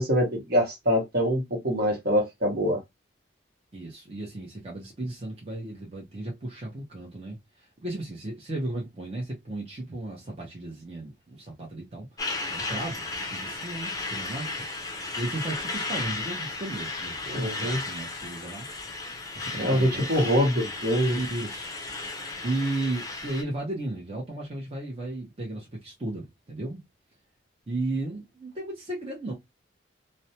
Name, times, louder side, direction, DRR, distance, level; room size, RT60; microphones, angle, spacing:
voice 1, 0.0-2.8 17.3-17.8 19.6-21.2, equal, 55° right, 1.0 m, -24 dB
voice 2, 3.7-12.1 12.5-14.6 15.2-18.7 19.3-20.4 21.1-21.8 22.4-26.8 27.7-29.3, right 2 dB, 35° right, 0.7 m, -34 dB
Truck, 12.2-23.4, left 3 dB, 20° left, 0.5 m, -34 dB
2.5 x 2.1 x 2.8 m
head